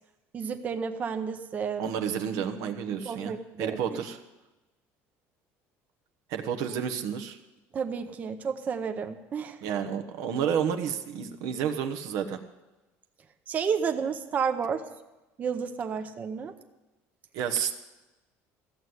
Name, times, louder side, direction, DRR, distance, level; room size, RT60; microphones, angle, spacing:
voice 1, 0.3-1.9 3.0-3.8 7.7-9.6 13.5-14.8 15.4-16.5, right 6 dB, 25° right, 6 dB, 0.8 m, -31 dB
voice 2, 1.8-4.2 6.3-7.4 9.6-12.4 17.3-17.7, right 8 dB, 65° right, 6 dB, 1.1 m, -30 dB
14.5 x 7.9 x 9.7 m, 1.1 s
cardioid pair, 165°, 6 cm